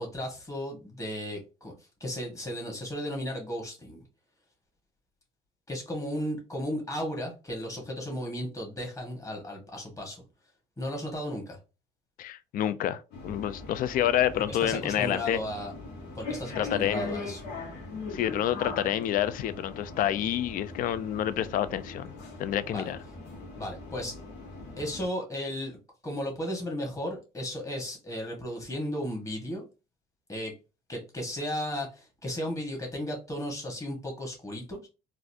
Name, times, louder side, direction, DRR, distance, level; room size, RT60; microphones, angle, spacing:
voice 1, 0.0-1.7 2.0-4.0 5.7-10.2 10.8-11.6 14.3-15.7 16.1-17.5 22.7-22.9 23.6-24.2 24.8-25.8 26.0-29.6 30.3-30.5 30.9-34.9, equal, 20° left, 1.5 m, -35 dB
voice 2, 12.2-15.4 16.6-17.1 18.1-22.1 22.4-23.0, left 11 dB, 55° left, 0.4 m, -28 dB
sound 1, 13.1-25.1, left 3 dB, 85° left, 1.3 m, -40 dB
4.0 x 2.5 x 2.7 m
cardioid pair, 110°, 17 cm